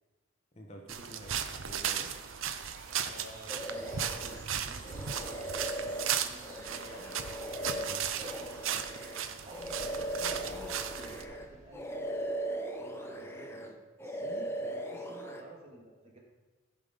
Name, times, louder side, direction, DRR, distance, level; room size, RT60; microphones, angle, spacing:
voice 1, 0.5-2.1 5.1-5.3 7.8-8.1, right 1 dB, 35° left, 1 dB, 1.3 m, -48 dB
sound 1, 0.9-11.2, right 8 dB, 90° right, 0.6 m, -36 dB
sound 2, 1.1-13.1, right 1 dB, 15° right, 2.5 m, -56 dB
voice 2, 3.0-8.9 9.4-12.1 12.8-16.2, right 2 dB, 30° right, -2 dB, 2.2 m, -52 dB
sound 3, 3.5-4.4 4.8-11.5 11.7-13.7 14.0-15.4, right 1 dB, 15° left, 0.8 m, -39 dB
15.0 x 5.5 x 5.2 m, 1.3 s
head